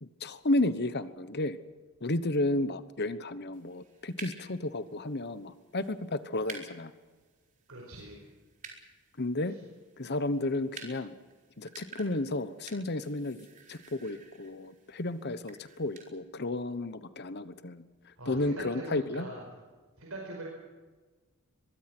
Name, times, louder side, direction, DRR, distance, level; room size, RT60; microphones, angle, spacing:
voice 1, 0.0-1.6 2.0-6.9 9.2-9.5 10.0-11.1 11.6-17.8 18.3-19.3, left 2 dB, 50° left, 13 dB, 1.1 m, -32 dB
sound 1, 3.5-16.1, right 4 dB, 35° right, 4.4 m, -52 dB
voice 2, 7.7-8.2 18.2-19.4 20.0-20.4, right 2 dB, 70° right, -1 dB, 5.0 m, -42 dB
23.5 x 22.5 x 6.1 m, 1.3 s
head